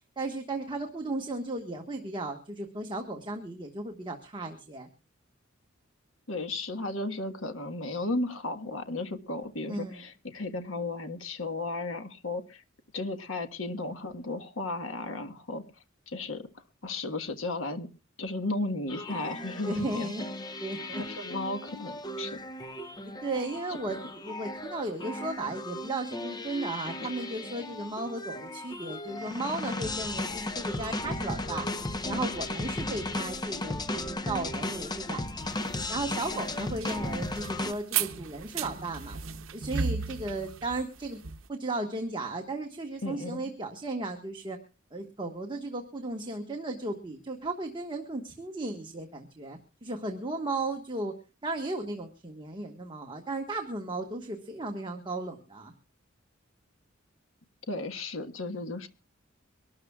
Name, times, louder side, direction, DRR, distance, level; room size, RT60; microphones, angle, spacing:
voice 1, 0.2-4.9 9.7-10.0 19.6-20.2 20.6-21.0 23.0-31.7 32.1-35.6 35.9-39.2 39.5-41.2 41.5-44.6 44.9-51.1 51.4-55.7, right 2 dB, 25° right, 3 dB, 1.4 m, -35 dB
voice 2, 6.3-12.6 12.9-15.6 16.1-16.5 16.8-17.9 18.2-20.1 21.0-22.4 27.0-27.1 43.0-43.4 57.7-58.9, left 2 dB, 80° left, 8 dB, 1.4 m, -34 dB
sound 1, 18.9-37.7, left 1 dB, 20° left, 0.8 m, -36 dB
sound 2, 35.4-41.5, right 6 dB, 75° right, 0.9 m, -35 dB
24.0 x 13.0 x 2.3 m, 0.33 s
head